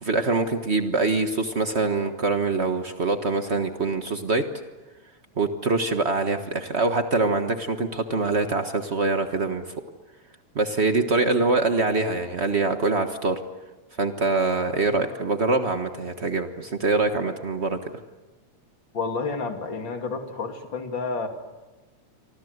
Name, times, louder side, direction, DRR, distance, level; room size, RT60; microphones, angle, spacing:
voice 1, 0.0-4.5 5.4-9.6 10.5-13.4 14.0-17.8, right 3 dB, 70° right, 6 dB, 0.6 m, -24 dB
voice 2, 18.9-21.3, left 4 dB, 40° left, 4 dB, 3.1 m, -30 dB
28.5 x 25.0 x 8.0 m, 1.2 s
omnidirectional pair, 3.5 m